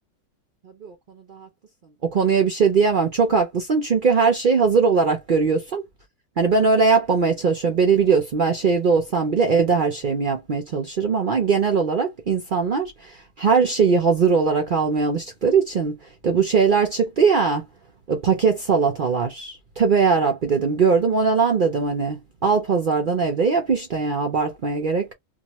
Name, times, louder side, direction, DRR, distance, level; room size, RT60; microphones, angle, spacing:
voice 1, 2.0-5.8 6.4-16.0 16.2-17.6 18.1-25.1, right 5 dB, 70° right, 0.4 m, -20 dB
2.5 x 2.3 x 2.9 m
omnidirectional pair, 1.7 m